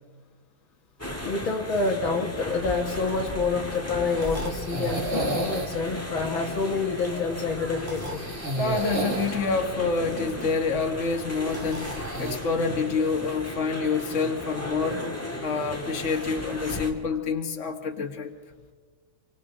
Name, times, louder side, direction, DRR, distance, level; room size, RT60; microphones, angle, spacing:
sound 1, 1.0-16.9, left 1 dB, 5° left, 1.6 m, -36 dB
voice 1, 1.2-8.3 9.4-9.5, left 4 dB, 70° left, 2 dB, 2.1 m, -28 dB
sound 2, 2.3-12.4, right 2 dB, 35° right, 2.4 m, -34 dB
voice 2, 8.6-15.0 15.4-18.3, left 4 dB, 35° left, 3 dB, 2.0 m, -27 dB
27.5 x 25.0 x 3.8 m, 1.5 s
omnidirectional pair, 2.3 m